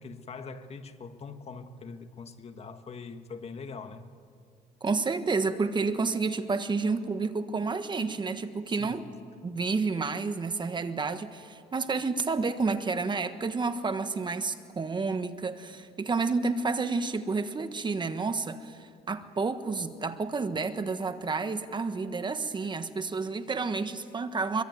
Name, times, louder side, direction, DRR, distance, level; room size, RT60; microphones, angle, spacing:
voice 1, 0.0-4.0 8.7-9.0, left 4 dB, 40° left, 1.7 m, -42 dB
voice 2, 4.8-9.1 9.4-24.6, right 4 dB, 25° right, 1.3 m, -30 dB
25.0 x 23.5 x 9.3 m
cardioid pair, 110°, 17 cm